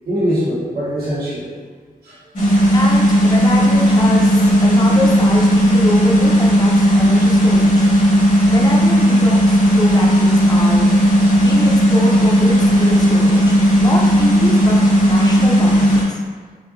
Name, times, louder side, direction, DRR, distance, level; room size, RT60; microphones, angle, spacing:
voice 1, 0.0-1.5 2.0-2.2 11.1-11.6, equal, 85° right, -10 dB, 1.2 m, -23 dB
sound 1, 2.4-16.0, equal, 55° left, 1.0 m, -13 dB
voice 2, 2.7-7.9 8.5-10.9 11.4-16.2, left 2 dB, 25° left, -1 dB, 0.5 m, -25 dB
3.6 x 2.9 x 2.6 m, 1.5 s
wide cardioid pair, 110°, 16 cm